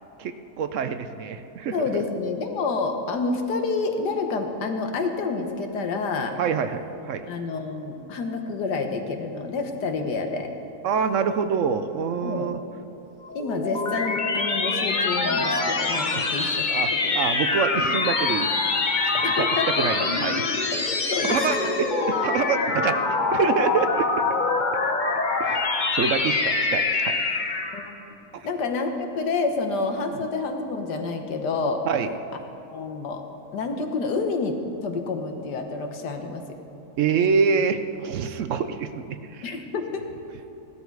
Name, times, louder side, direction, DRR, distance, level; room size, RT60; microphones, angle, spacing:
voice 1, 0.2-2.0 6.4-7.3 10.8-12.6 16.1-18.5 19.1-19.5 19.7-20.4 21.2-21.6 22.1-23.0 23.3-24.2 25.4-25.7 25.9-27.1 28.3-28.5 31.9-32.1 37.0-39.6, right 6 dB, 65° right, 9 dB, 0.8 m, -26 dB
voice 2, 1.7-6.4 7.3-10.5 12.2-12.5 13.3-17.2 19.0-20.1 20.7-20.8 21.1-21.7 27.7-27.9 28.4-31.8 32.7-33.2 33.5-36.4 39.4-40.1, left 4 dB, 85° left, 5 dB, 1.7 m, -28 dB
sound 1, 13.2-27.9, left 3 dB, 35° left, 0.9 m, -25 dB
16.0 x 12.5 x 4.7 m, 3.0 s
omnidirectional pair, 1.7 m